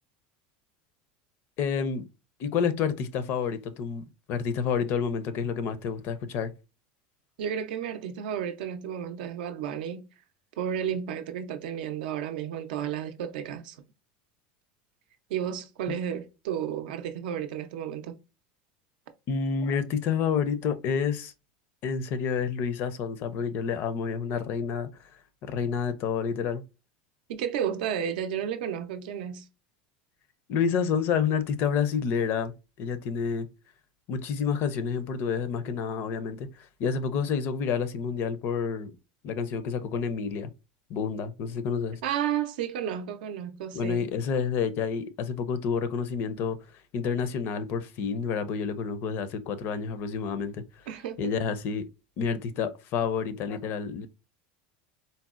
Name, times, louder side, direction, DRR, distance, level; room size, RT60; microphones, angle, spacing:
voice 1, 1.6-2.1 2.4-6.5 19.3-21.3 21.8-24.9 25.5-26.6 30.5-33.5 34.1-36.5 36.8-38.9 39.2-40.5 40.9-42.0 43.7-46.6 46.9-50.6 51.2-51.8 52.2-54.1, left 6 dB, 50° left, 0.5 m, -29 dB
voice 2, 7.4-10.1 10.6-13.8 15.3-18.2 27.3-29.5 42.0-44.1 50.9-51.3, right 9 dB, 80° right, 0.5 m, -32 dB
3.9 x 2.1 x 2.4 m
supercardioid pair, 125°, 5 cm